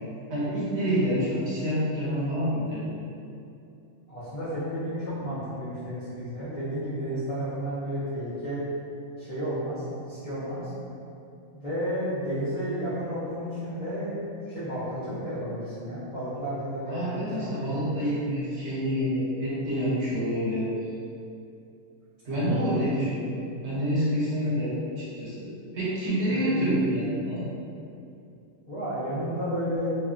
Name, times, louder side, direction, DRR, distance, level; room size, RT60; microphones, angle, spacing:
voice 1, 0.3-2.9 16.9-20.7 22.2-25.5 25.7-27.5, equal, 65° right, -8 dB, 0.9 m, -27 dB
voice 2, 4.1-8.6 9.2-10.7 11.5-17.9 22.3-22.8 24.4-24.6 26.3-26.7 28.7-30.0, equal, 40° left, -15 dB, 0.5 m, -32 dB
2.8 x 2.1 x 2.4 m, 2.6 s
omnidirectional pair, 1.4 m